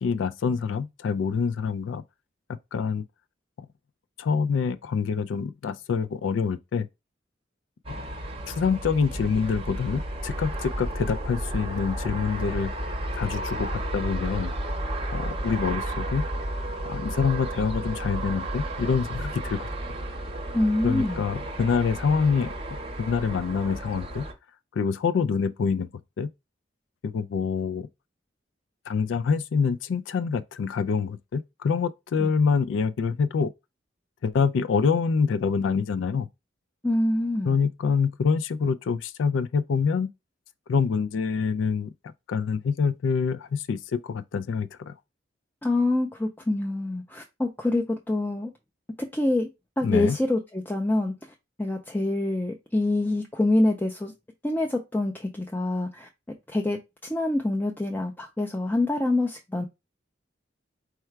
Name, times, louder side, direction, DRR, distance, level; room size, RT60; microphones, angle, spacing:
voice 1, 0.0-2.0 2.7-3.0 4.2-6.9 7.9-8.1 8.5-12.7 13.2-14.5 15.1-16.2 16.9-19.7 20.8-22.5 23.0-24.2 24.7-25.9 26.2-26.3 27.0-27.9 28.9-33.5 34.2-36.3 37.4-40.1 40.7-41.9 42.3-44.9 49.8-50.2, left 5 dB, 80° left, 0.3 m, -26 dB
sound 1, 7.8-24.3, right 1 dB, 30° right, 0.7 m, -32 dB
voice 2, 20.5-21.2 32.2-32.3 36.8-37.6 45.6-48.5 49.0-49.5 49.8-51.1 51.6-54.1 54.4-56.1 56.5-59.7, left 2 dB, 10° left, 0.4 m, -26 dB
4.7 x 2.2 x 4.4 m
head